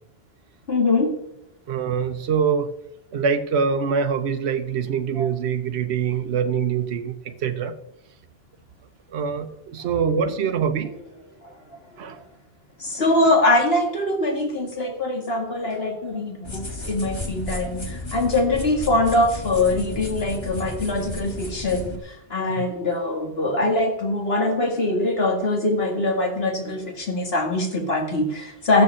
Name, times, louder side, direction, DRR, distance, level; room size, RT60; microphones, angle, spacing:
voice 1, 0.7-1.2 5.2-5.3 12.8-28.8, left 2 dB, 65° left, 2 dB, 2.3 m, -23 dB
voice 2, 1.7-2.7 3.1-7.7 9.1-10.9 12.0-12.2 22.5-22.6, right 6 dB, 75° right, 7 dB, 1.1 m, -24 dB
sound 1, 16.4-22.0, left 2 dB, 25° left, 1.5 m, -33 dB
14.0 x 6.9 x 7.5 m, 0.87 s
omnidirectional pair, 1.1 m